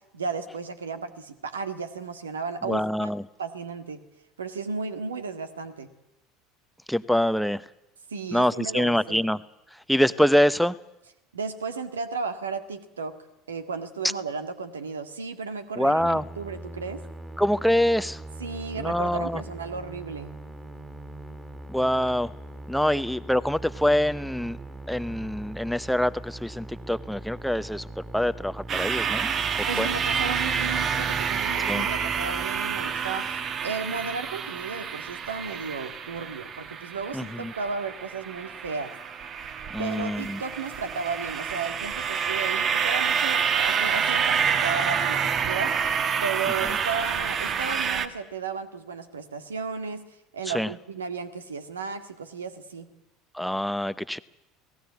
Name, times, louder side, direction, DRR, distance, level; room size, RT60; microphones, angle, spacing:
voice 1, 0.1-3.1 3.4-4.0 4.4-5.9 8.1-9.2 11.3-13.2 13.5-17.0 18.4-20.3 29.7-38.9 39.8-45.8 46.2-50.0 50.3-52.9, right 5 dB, 80° right, 9 dB, 1.9 m, -34 dB
voice 2, 2.7-3.2 6.9-7.6 8.3-9.4 9.7-10.8 15.8-16.3 17.4-18.2 18.8-19.4 21.7-22.3 22.7-24.6 24.9-29.3 29.8-29.9 31.6-31.9 37.1-37.5 39.7-40.4 50.5-50.7 53.3-54.2, equal, ahead, 14 dB, 0.8 m, -25 dB
Musical instrument, 16.0-33.1, right 2 dB, 15° right, 3.2 m, -41 dB
sound 1, 28.7-48.1, right 7 dB, 40° right, 1.7 m, -28 dB
28.5 x 18.5 x 8.3 m, 0.94 s
figure-of-eight pair, 70°, 0 cm